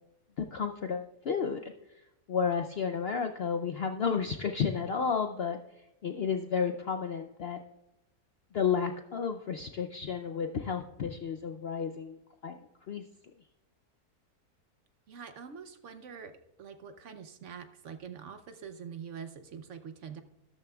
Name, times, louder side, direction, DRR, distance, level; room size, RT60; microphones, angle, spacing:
voice 1, 0.4-7.6 8.5-12.6 12.9-13.0, left 6 dB, 65° left, 6 dB, 0.6 m, -32 dB
voice 2, 15.1-16.3 16.6-20.2, right 7 dB, 60° right, 9 dB, 0.9 m, -45 dB
13.0 x 13.0 x 2.3 m, 0.91 s
omnidirectional pair, 1.6 m